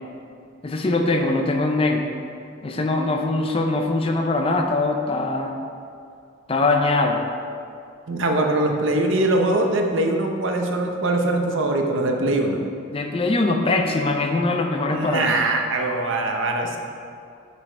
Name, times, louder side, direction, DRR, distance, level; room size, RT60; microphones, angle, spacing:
voice 1, 0.6-2.0 2.6-5.5 6.5-7.2 12.9-15.3, left 2 dB, 25° left, 3 dB, 0.4 m, -22 dB
voice 2, 8.1-12.6 14.9-16.8, right 2 dB, 65° right, 3 dB, 0.7 m, -22 dB
6.0 x 5.0 x 4.4 m, 2.4 s
head